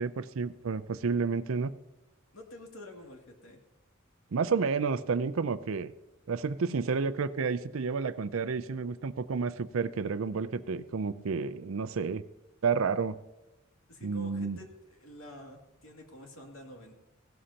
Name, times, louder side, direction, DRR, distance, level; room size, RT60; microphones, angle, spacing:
voice 1, 0.0-1.7 4.3-5.9 6.3-12.2 12.6-13.2 14.0-14.6, right 5 dB, 75° right, 15 dB, 0.5 m, -30 dB
voice 2, 2.3-3.6 13.9-16.9, left 1 dB, 75° left, 2 dB, 2.4 m, -48 dB
16.5 x 12.5 x 2.9 m, 1.0 s
head